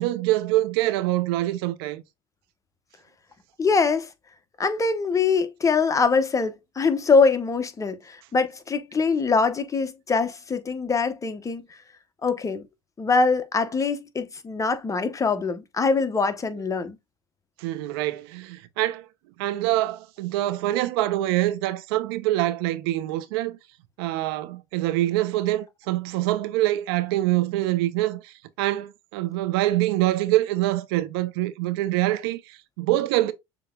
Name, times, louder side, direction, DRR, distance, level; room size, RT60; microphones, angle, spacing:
voice 1, 0.0-2.0 17.6-19.1 19.4-23.6 24.0-33.3, right 16 dB, 80° right, 0.7 m, -25 dB
voice 2, 3.6-4.1 4.6-11.8 12.2-12.6 13.0-17.0, left 4 dB, 25° left, 1.0 m, -23 dB
6.9 x 3.0 x 2.3 m
hypercardioid pair, 80°, 13 cm